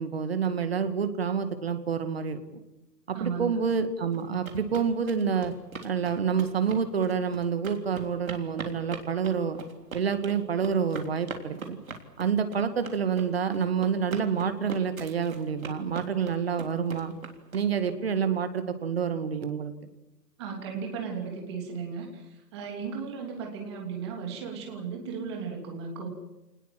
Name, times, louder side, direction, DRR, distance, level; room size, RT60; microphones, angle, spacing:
voice 1, 0.0-2.4 3.1-5.5 5.8-9.6 9.9-11.8 12.2-17.1 17.5-19.7, right 6 dB, 35° right, 10 dB, 2.1 m, -28 dB
voice 2, 3.1-3.6 20.4-26.1, right 6 dB, 15° right, 2 dB, 3.1 m, -35 dB
sound 1, 4.1-17.9, right 5 dB, 55° right, 3.6 m, -42 dB
28.0 x 19.5 x 7.7 m, 0.97 s
hypercardioid pair, 175°, 50 cm